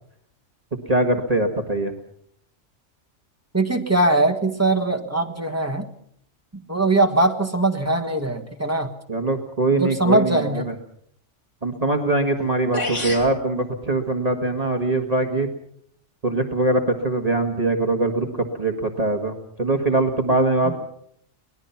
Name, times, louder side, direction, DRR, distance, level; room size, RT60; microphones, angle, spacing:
voice 1, 0.9-1.9 9.1-10.7 11.6-15.5 16.2-20.8, right 2 dB, 30° right, 3 dB, 1.8 m, -22 dB
voice 2, 3.5-5.9 6.5-8.9 9.7-10.6 20.6-20.8, right 2 dB, 15° right, 5 dB, 1.6 m, -21 dB
sound 1, 12.4-12.5 12.7-13.3, left 2 dB, 90° left, 3.3 m, -27 dB
24.5 x 20.0 x 5.8 m, 0.68 s
omnidirectional pair, 1.2 m